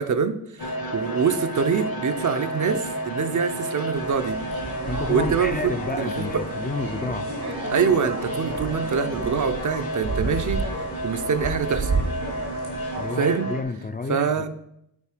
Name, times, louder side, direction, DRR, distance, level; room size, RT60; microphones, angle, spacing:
voice 1, 0.0-4.5 5.1-6.4 7.7-12.0 13.2-13.5 14.1-14.5, right 6 dB, 50° right, 9 dB, 0.5 m, -25 dB
sound 1, 0.6-13.6, right 1 dB, 65° left, 1.4 m, -32 dB
sound 2, 3.9-13.1, right 2 dB, 90° right, 2.4 m, -32 dB
voice 2, 4.9-7.3 13.0-14.5, left 3 dB, 25° left, 7 dB, 0.4 m, -30 dB
8.5 x 4.3 x 4.9 m, 0.78 s
wide cardioid pair, 120°, 38 cm